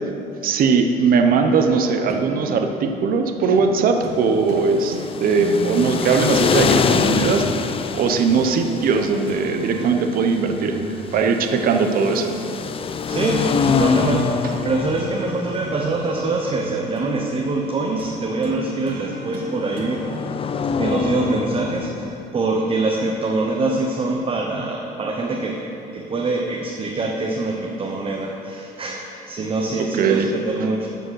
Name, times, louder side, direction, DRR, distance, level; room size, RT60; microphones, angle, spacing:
voice 1, 0.4-10.8 11.1-12.3 30.0-30.3, right 5 dB, 60° right, 5 dB, 0.9 m, -19 dB
sound 1, 2.1-2.7 3.6-3.8 4.0-4.2 4.5-7.6 8.4-9.0 9.3-10.1 10.5-12.3 13.1-13.3 13.6-13.8 14.0-14.7 14.9-17.2 18.0-20.0 21.0-21.1, right 4 dB, 90° right, 1.3 m, -35 dB
sound 2, 4.4-22.3, left 6 dB, 35° left, 0.5 m, -26 dB
voice 2, 13.0-20.2 20.8-30.9, right 3 dB, 35° right, 0 dB, 1.0 m, -24 dB
13.0 x 5.1 x 6.4 m, 2.8 s
cardioid pair, 110°, 17 cm